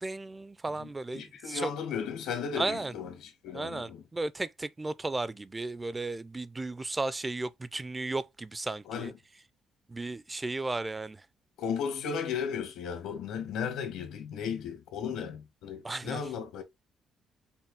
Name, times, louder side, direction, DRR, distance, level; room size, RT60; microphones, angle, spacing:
voice 1, 0.0-1.6 2.6-2.9 3.5-9.1 9.9-11.2 15.8-16.2, right 2 dB, 20° right, 0.4 m, -35 dB
voice 2, 0.8-4.0 8.8-9.1 11.6-16.6, left 7 dB, 85° left, 1.5 m, -35 dB
5.5 x 2.3 x 3.5 m
cardioid pair, 90°, 0 cm